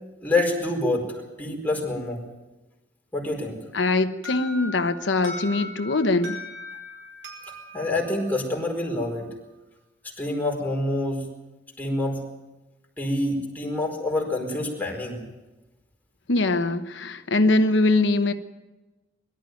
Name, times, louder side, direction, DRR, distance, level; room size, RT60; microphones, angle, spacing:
voice 1, 0.2-2.2 3.1-3.6 7.7-9.3 10.2-11.2 11.8-12.2 13.0-15.2, left 2 dB, 10° left, 4.6 m, -26 dB
voice 2, 3.7-6.4 16.3-18.3, left 2 dB, 80° left, 1.1 m, -22 dB
Alarm, 4.2-9.0, left 1 dB, 70° right, 5.2 m, -39 dB
22.5 x 13.0 x 9.1 m
head